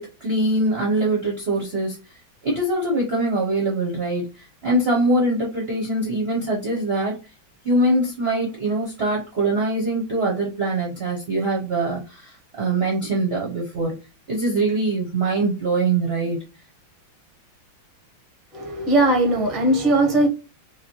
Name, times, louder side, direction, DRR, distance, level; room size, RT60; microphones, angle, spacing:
voice 1, 0.0-2.0 2.4-7.2 7.6-13.9 14.3-16.4, right 2 dB, 55° right, 0.7 m, -23 dB
voice 2, 18.5-20.3, right 1 dB, ahead, 0.4 m, -19 dB
4.9 x 2.3 x 2.9 m
omnidirectional pair, 2.2 m